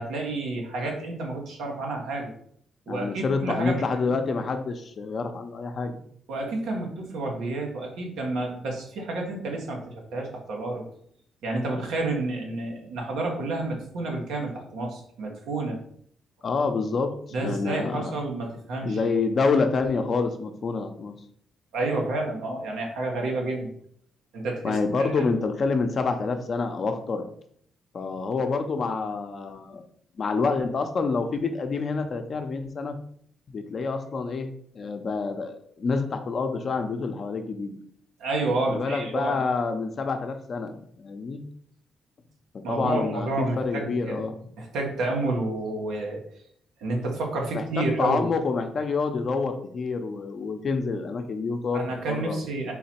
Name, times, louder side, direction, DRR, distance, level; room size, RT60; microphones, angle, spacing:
voice 1, 0.0-2.3 2.9-4.1 6.3-10.8 11.4-15.8 17.3-19.0 21.7-23.7 24.3-25.3 38.2-39.4 42.6-44.2 44.6-46.2 46.8-48.3 51.7-52.7, right 2 dB, 85° right, 0 dB, 1.1 m, -30 dB
voice 2, 2.9-6.0 16.4-18.1 18.8-21.1 24.6-27.3 27.9-29.8 30.2-32.9 33.5-37.8 38.7-41.4 42.5-44.3 47.5-51.8 52.1-52.7, left 4 dB, 50° left, 6 dB, 0.6 m, -27 dB
3.9 x 2.9 x 4.3 m, 0.64 s
cardioid pair, 80°, 0 cm